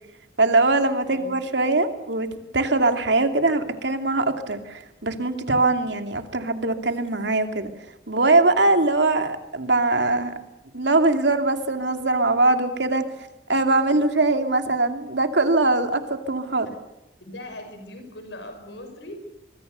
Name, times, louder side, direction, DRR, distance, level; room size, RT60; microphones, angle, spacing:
voice 1, 0.4-2.3 2.5-7.7 8.1-10.3 10.7-13.0 13.5-16.7, right 2 dB, 75° right, 7 dB, 2.5 m, -21 dB
voice 2, 1.1-1.4 17.2-19.1, left 1 dB, 75° left, 6 dB, 5.9 m, -40 dB
25.0 x 23.0 x 6.8 m, 0.89 s
head